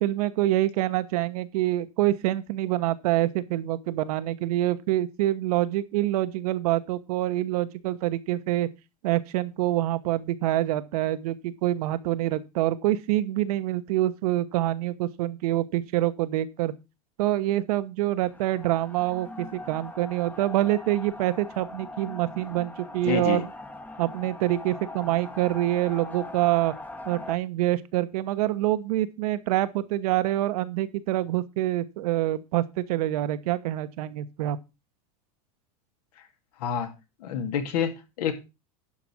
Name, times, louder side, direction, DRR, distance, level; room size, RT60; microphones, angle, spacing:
voice 1, 0.0-8.7 9.0-16.7 17.2-23.5 24.0-26.7 27.1-34.6, right 15 dB, 75° right, 1.1 m, -26 dB
sound 1, 18.2-27.4, left 2 dB, 10° left, 1.0 m, -41 dB
voice 2, 23.0-23.4 36.6-36.9 37.2-38.3, left 7 dB, 80° left, 2.4 m, -27 dB
11.5 x 5.1 x 6.1 m
supercardioid pair, 130°, 19 cm